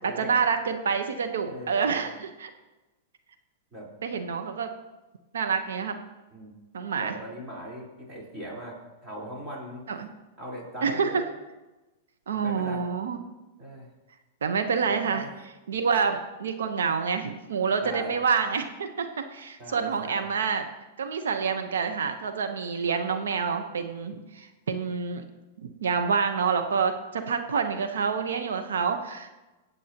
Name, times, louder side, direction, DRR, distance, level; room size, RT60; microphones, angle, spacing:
voice 1, 0.0-2.5 4.0-4.7 5.3-5.9 6.7-7.1 9.9-10.1 10.8-11.2 12.3-13.2 14.4-15.3 15.7-20.7 21.0-25.2 25.6-29.3, right 6 dB, 90° right, 7 dB, 1.0 m, -27 dB
voice 2, 1.5-2.0 3.7-3.9 6.3-6.5 7.0-9.8 10.4-11.2 12.3-12.8 13.6-13.9 15.1-15.3 17.8-18.2 19.6-20.3, right 1 dB, 25° right, -4 dB, 4.1 m, -39 dB
22.0 x 8.0 x 2.9 m, 1.1 s
hypercardioid pair, 130°, 0 cm